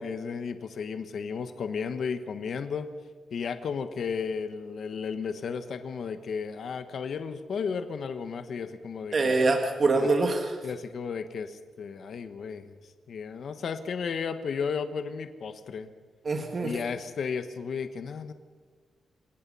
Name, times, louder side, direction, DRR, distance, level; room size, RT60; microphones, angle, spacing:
voice 1, 0.0-2.9 3.3-9.4 9.9-10.1 10.6-12.7 13.1-15.9 16.6-18.3, left 6 dB, 55° left, 9 dB, 1.3 m, -34 dB
voice 2, 9.1-10.5 16.3-16.7, right 3 dB, 35° right, 3 dB, 1.9 m, -24 dB
27.0 x 17.5 x 5.6 m, 1.5 s
wide cardioid pair, 160°, 0 cm